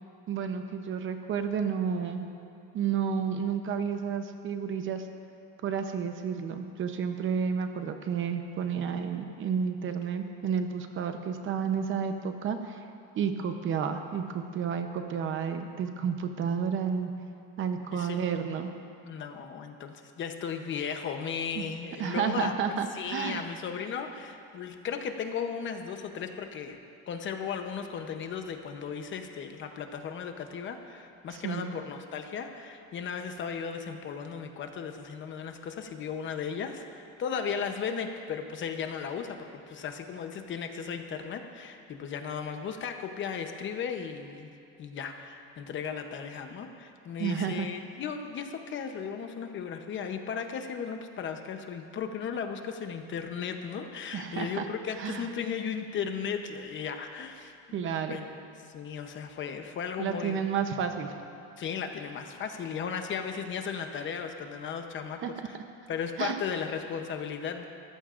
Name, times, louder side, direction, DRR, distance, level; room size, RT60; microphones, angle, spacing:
voice 1, 0.3-2.3 2.7-5.1 5.6-12.8 13.1-17.1 17.6-18.7 21.6-21.7 22.0-23.4 31.3-31.7 47.2-47.7 54.1-54.7 55.0-55.3 57.7-58.2 60.0-61.1 65.2-65.3 66.2-66.4, right 7 dB, 35° right, 6 dB, 0.8 m, -31 dB
voice 2, 17.9-18.2 19.0-26.8 27.1-44.5 44.8-57.5 58.1-58.3 58.6-60.4 61.6-65.3 65.9-67.6, left 6 dB, 35° left, 6 dB, 0.8 m, -36 dB
24.5 x 15.0 x 2.5 m, 2.5 s
cardioid pair, 170°, 35 cm